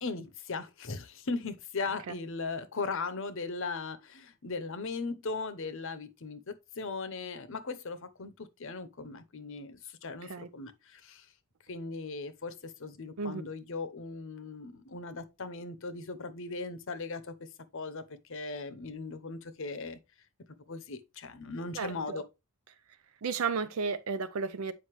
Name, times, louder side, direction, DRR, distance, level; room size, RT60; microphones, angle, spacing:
voice 1, 0.0-11.3 11.7-20.0 20.7-22.2, left 3 dB, 60° left, 0.8 m, -38 dB
voice 2, 21.8-22.2 23.2-24.7, right 5 dB, 75° right, 0.5 m, -33 dB
7.8 x 5.2 x 3.1 m
head